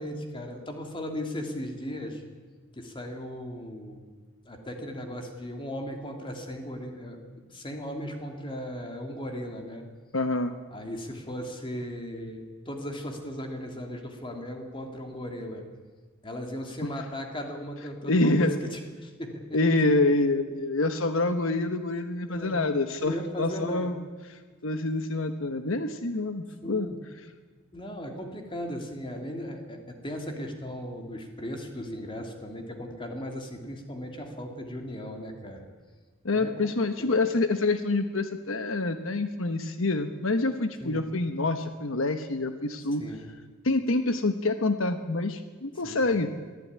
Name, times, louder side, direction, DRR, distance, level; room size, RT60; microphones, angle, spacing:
voice 1, 0.0-2.2 2.7-4.0 4.4-7.2 7.5-9.8 10.7-15.6 16.2-19.4 22.3-22.7 23.0-23.9 26.6-27.0 27.7-35.7 36.3-36.7 37.0-37.1 40.8-41.1 43.0-43.3 45.8-46.0, equal, 25° left, 3 dB, 2.8 m, -37 dB
voice 2, 10.1-10.5 18.0-18.5 19.5-24.0 24.3-26.9 36.2-43.0 43.6-46.3, left 2 dB, 75° left, 8 dB, 1.2 m, -26 dB
22.5 x 14.5 x 9.6 m, 1.4 s
head